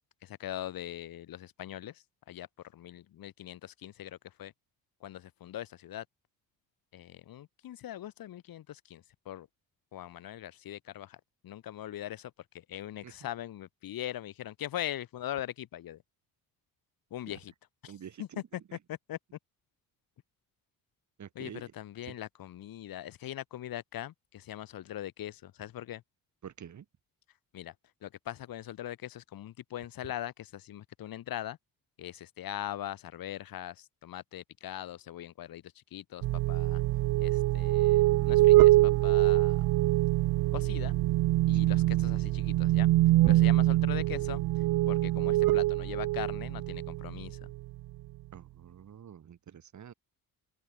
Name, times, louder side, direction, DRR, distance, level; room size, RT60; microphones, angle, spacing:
voice 1, 0.2-4.5 5.0-6.0 6.9-9.5 9.9-16.0 17.1-17.5 17.8-19.2 21.3-26.0 27.5-27.7 28.0-31.6 32.0-36.8 37.2-39.6 40.5-40.9 41.5-42.9 43.3-44.4 44.9-47.4, left 12 dB, 70° left, 4.8 m, -41 dB
voice 2, 17.9-18.4 18.7-18.8 21.2-21.6 22.0-22.1 26.4-26.8 48.3-49.9, right 9 dB, 50° right, 6.4 m, -47 dB
sound 1, 36.2-47.6, right 16 dB, 70° right, 0.7 m, -24 dB
open air
cardioid pair, 115°, 36 cm